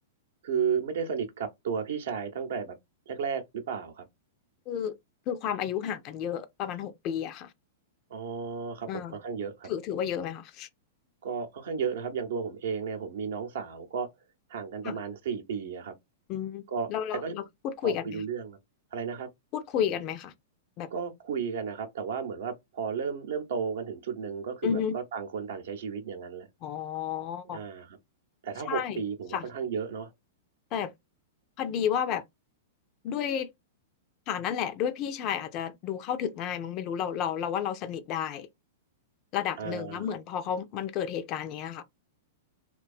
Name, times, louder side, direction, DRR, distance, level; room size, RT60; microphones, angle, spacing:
voice 1, 0.4-2.8 3.1-4.1 8.1-9.7 11.2-14.1 14.5-15.9 16.7-16.9 17.2-17.4 17.8-18.6 18.9-19.3 20.9-26.5 27.5-28.0 28.4-30.1 39.6-40.1, right 6 dB, 65° right, 0.7 m, -33 dB
voice 2, 5.3-7.5 8.9-9.1 9.7-10.7 14.8-15.0 16.3-16.6 16.9-18.2 19.5-20.3 20.8-20.9 24.6-25.0 26.6-27.6 28.7-29.0 29.3-29.5 30.7-30.9 31.6-32.2 33.0-33.5 34.3-38.5 39.3-41.8, left 8 dB, 40° left, 0.4 m, -31 dB
2.6 x 2.2 x 2.4 m
figure-of-eight pair, 105°, 0 cm